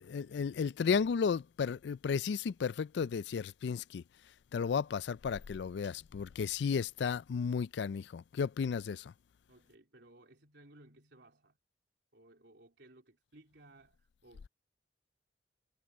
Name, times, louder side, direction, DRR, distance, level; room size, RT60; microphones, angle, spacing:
voice 1, 0.1-4.0 4.5-9.1, left 6 dB, 65° left, 0.3 m, -33 dB
voice 2, 9.5-11.6 12.1-14.5, right 1 dB, 70° right, 3.6 m, -60 dB
head